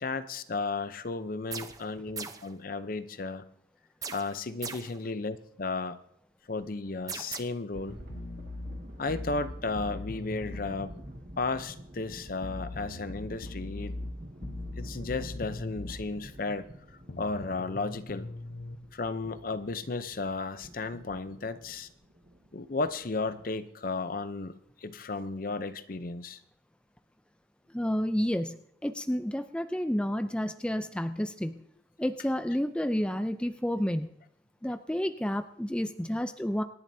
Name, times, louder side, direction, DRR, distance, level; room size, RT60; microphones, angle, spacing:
voice 1, 0.0-3.4 4.1-6.0 6.5-8.0 9.0-10.9 11.4-13.9 14.8-16.7 17.2-18.3 18.9-21.9 22.5-24.5 24.8-26.4, left 3 dB, 50° left, 12 dB, 0.7 m, -34 dB
sound 1, 1.5-1.9 2.2-2.5 4.0-5.0 7.1-7.4, right 5 dB, 20° right, 0.8 m, -39 dB
sound 2, 7.7-23.5, equal, 55° right, 2.0 m, -49 dB
sound 3, 8.1-10.7 12.4-16.0 17.1-18.7, left 2 dB, 80° left, 1.1 m, -40 dB
voice 2, 27.7-31.6 32.0-34.1 34.6-36.6, equal, 5° left, 8 dB, 0.5 m, -30 dB
26.5 x 10.5 x 2.8 m, 0.72 s
head